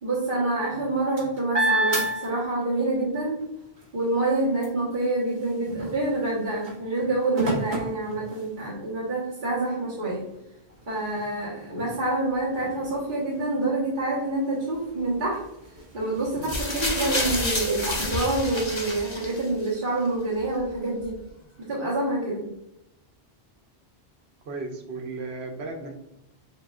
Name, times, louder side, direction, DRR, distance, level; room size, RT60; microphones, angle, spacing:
voice 1, 0.0-3.4 3.9-10.2 10.9-15.4 15.9-21.2 21.6-22.5, right 2 dB, 50° right, -9 dB, 1.4 m, -27 dB
sound 1, 0.7-3.0 3.4-8.9 9.5-9.6 9.9-17.9, right 1 dB, 70° right, 1.5 m, -33 dB
sound 2, 16.4-19.7 20.6-20.7, left 2 dB, 30° left, 0.8 m, -29 dB
voice 2, 24.4-25.9, right 3 dB, 90° right, 3 dB, 1.1 m, -35 dB
7.0 x 2.4 x 2.4 m, 0.83 s
omnidirectional pair, 1.0 m